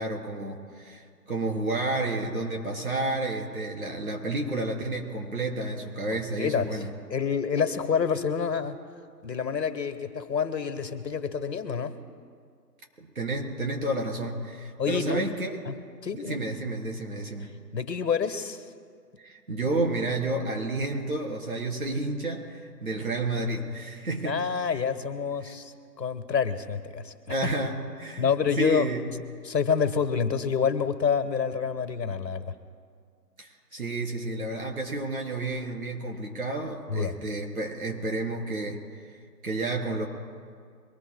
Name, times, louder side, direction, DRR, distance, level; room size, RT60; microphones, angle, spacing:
voice 1, 0.0-6.9 13.0-15.6 16.1-17.5 19.2-24.4 25.4-25.5 27.3-29.1 33.4-40.1, right 2 dB, 60° right, 0 dB, 3.7 m, -31 dB
voice 2, 6.1-6.8 7.1-8.8 9.2-12.0 14.8-15.2 15.7-15.8 16.0-16.4 17.7-18.6 24.2-27.5 28.2-28.9 29.4-32.5 36.9-37.1, left 6 dB, 85° left, 11 dB, 1.4 m, -28 dB
23.5 x 20.0 x 2.3 m, 2.1 s
hypercardioid pair, 175°, 49 cm